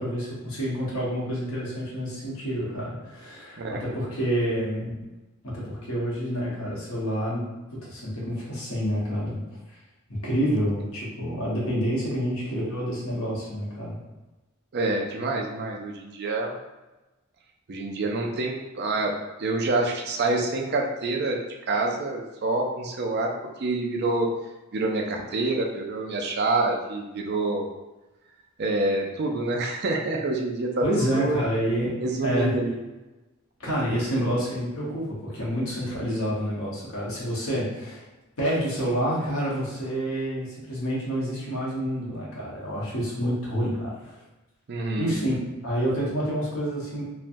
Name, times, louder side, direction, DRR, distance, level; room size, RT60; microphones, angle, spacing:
voice 1, 0.0-4.9 5.4-9.4 9.7-9.8 10.1-14.0 30.8-32.5 33.6-38.1 38.4-44.2 45.0-45.4 45.6-47.0, equal, 85° left, -6 dB, 1.1 m, -28 dB
voice 2, 14.7-16.5 17.7-21.4 21.7-23.3 23.6-24.3 24.7-27.7 28.6-30.9 31.1-31.4 32.0-32.8 44.7-45.2, right 2 dB, 50° right, 1 dB, 0.4 m, -27 dB
3.1 x 2.2 x 2.5 m, 1.1 s
head